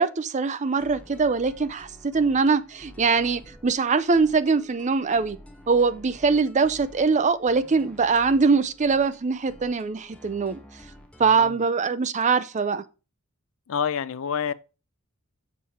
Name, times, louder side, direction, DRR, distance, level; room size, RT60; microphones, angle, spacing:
voice 1, 0.0-5.4 5.7-10.6 11.2-12.8, right 4 dB, 35° right, 0.5 m, -22 dB
sound 1, 0.8-11.5, equal, 5° left, 1.1 m, -49 dB
voice 2, 11.2-11.6 13.7-14.5, left 7 dB, 65° left, 0.5 m, -28 dB
7.4 x 4.9 x 4.4 m
head